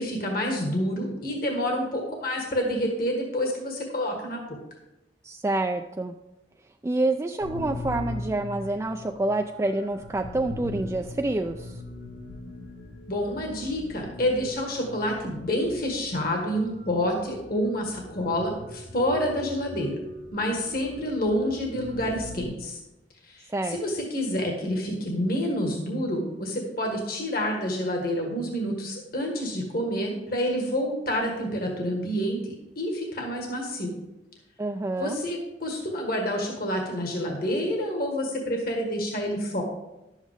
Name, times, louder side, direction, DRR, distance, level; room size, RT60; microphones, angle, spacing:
voice 1, 0.0-4.4 13.1-20.0 20.3-22.8 23.2-33.9 35.0-39.6, equal, 55° left, 1 dB, 1.6 m, -28 dB
voice 2, 5.2-6.2 6.8-11.8 23.5-23.8 34.6-35.2, right 2 dB, 15° right, 4 dB, 0.3 m, -27 dB
sound 1, 7.4-22.4, left 2 dB, 85° left, 3.5 m, -40 dB
11.0 x 8.1 x 3.6 m, 0.96 s
head